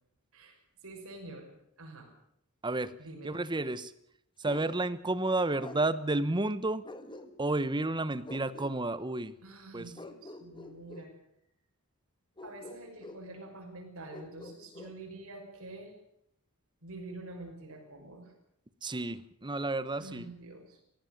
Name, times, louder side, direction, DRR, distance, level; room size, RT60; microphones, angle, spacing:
voice 1, 0.8-1.5 1.8-2.1 3.0-3.3 9.4-11.1 12.4-15.9 16.8-18.3 20.0-20.8, right 2 dB, 65° right, 2 dB, 6.2 m, -47 dB
voice 2, 2.6-2.9 3.2-3.9 4.4-6.8 7.4-9.3 9.7-9.9 18.8-20.3, right 2 dB, 20° right, 16 dB, 0.9 m, -31 dB
Bark, 4.4-4.7 5.6-5.8 6.8-7.6 8.2-8.8 9.9-11.1 12.4-13.3 14.1-15.0, left 2 dB, 20° left, 1.6 m, -47 dB
19.0 x 15.5 x 9.1 m, 0.73 s
head